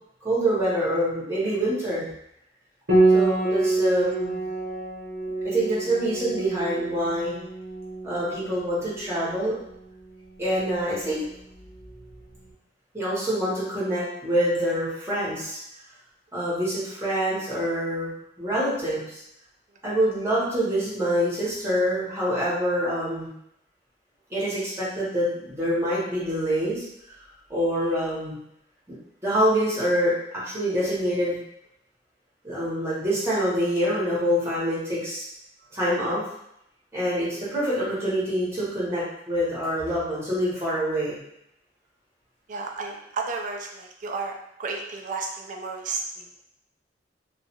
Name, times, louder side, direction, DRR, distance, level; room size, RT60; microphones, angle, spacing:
voice 1, 0.2-2.0 3.1-4.4 5.4-7.3 8.0-9.5 10.4-11.2 12.9-15.6 16.3-18.1 18.4-19.2 19.8-23.3 24.3-27.2 27.5-28.4 29.2-31.4 32.4-35.2 35.7-36.2 36.9-41.2, equal, 15° right, -8 dB, 1.0 m, -26 dB
Piano, 2.9-12.2, right 2 dB, 65° right, 0.8 m, -27 dB
voice 2, 42.5-44.3 44.6-46.4, right 4 dB, 45° right, 2 dB, 0.4 m, -32 dB
2.3 x 2.3 x 2.8 m, 0.77 s
head